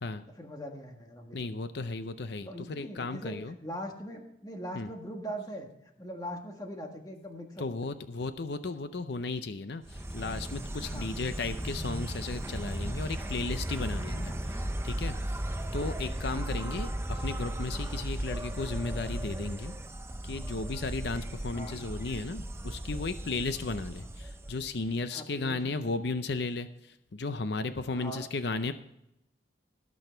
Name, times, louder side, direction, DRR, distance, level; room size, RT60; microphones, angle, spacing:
voice 1, 0.4-1.6 2.5-5.7 6.0-7.9 10.8-11.1 14.1-14.4 21.5-21.8 25.1-25.6 27.9-28.3, equal, 20° left, 3 dB, 1.5 m, -41 dB
voice 2, 1.3-3.6 4.7-4.9 7.6-14.5 14.8-15.2 15.7-19.7 20.2-28.7, left 3 dB, 60° left, 11 dB, 0.6 m, -35 dB
Insect, 9.8-24.9, right 1 dB, 15° right, 0.6 m, -36 dB
18.5 x 6.3 x 4.5 m, 0.82 s
head